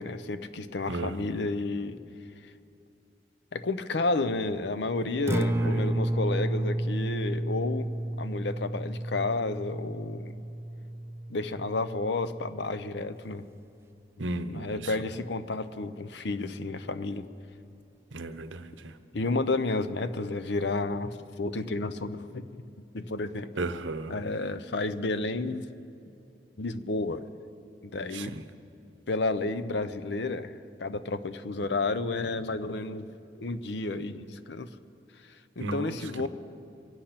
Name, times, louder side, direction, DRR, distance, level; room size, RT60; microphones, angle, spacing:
voice 1, 0.0-2.0 3.5-10.3 11.3-13.4 14.5-17.2 19.1-22.6 22.9-23.5 24.1-25.7 26.6-27.2 27.8-28.3 29.1-30.5 30.8-33.1 33.4-34.7 35.6-36.3, left 3 dB, 65° left, 12 dB, 0.7 m, -31 dB
voice 2, 0.9-1.4 5.5-6.0 14.2-15.0 18.1-19.0 23.5-24.2 28.1-28.4 35.6-36.3, right 2 dB, 80° right, 11 dB, 0.8 m, -35 dB
Acoustic guitar, 5.2-13.3, right 1 dB, 15° right, 0.4 m, -32 dB
24.5 x 8.7 x 5.8 m, 2.7 s
head